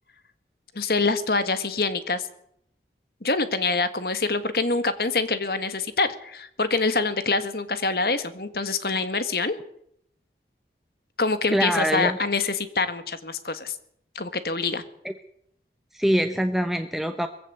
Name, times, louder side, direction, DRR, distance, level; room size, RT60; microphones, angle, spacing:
voice 1, 0.7-2.3 3.2-9.6 11.2-13.7 14.1-14.8, left 3 dB, 60° left, 11 dB, 1.7 m, -25 dB
voice 2, 11.5-12.2 15.0-15.1 15.9-17.3, equal, ahead, 6 dB, 0.8 m, -24 dB
21.5 x 15.5 x 7.9 m, 0.71 s
head